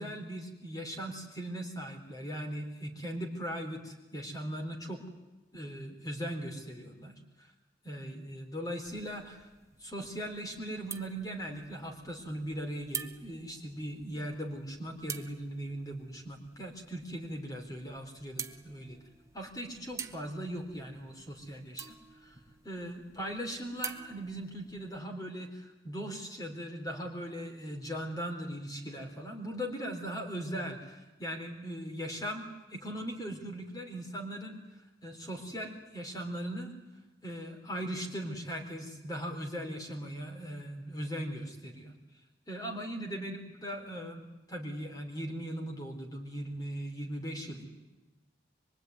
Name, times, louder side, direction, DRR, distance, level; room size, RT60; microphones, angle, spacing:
voice 1, 0.0-5.0 5.5-7.5 7.8-9.5 9.8-19.0 19.3-34.6 35.0-36.7 37.2-41.9 42.5-47.6, equal, 20° left, 3 dB, 4.0 m, -39 dB
sound 1, 8.8-25.0, right 6 dB, 15° right, 1.1 m, -48 dB
24.5 x 23.5 x 9.6 m, 1.1 s
head